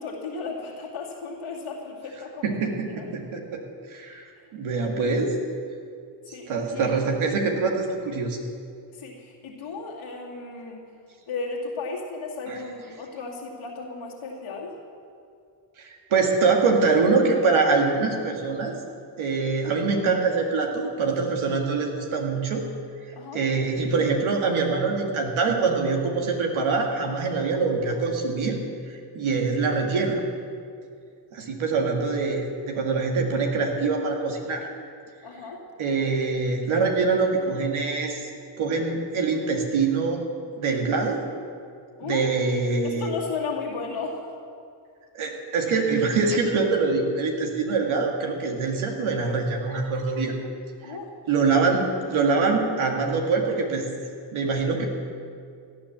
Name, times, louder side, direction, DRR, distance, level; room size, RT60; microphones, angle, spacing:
voice 1, 0.0-3.2 6.3-7.0 8.9-10.8 11.3-14.8 23.1-23.4 35.2-35.6 42.0-42.2 42.8-44.3 50.8-51.1, left 4 dB, 85° left, -2 dB, 2.7 m, -35 dB
voice 2, 2.4-3.6 3.9-5.3 6.5-8.4 12.5-12.6 15.8-18.7 19.2-22.6 23.3-28.6 28.9-30.2 31.3-34.7 35.8-38.3 38.6-40.2 40.6-41.2 42.0-43.1 45.1-50.3 50.8-51.0 51.3-53.9 54.3-54.8, right 4 dB, 90° right, 1 dB, 2.1 m, -24 dB
17.0 x 9.8 x 7.3 m, 2.3 s
supercardioid pair, 45°, 48 cm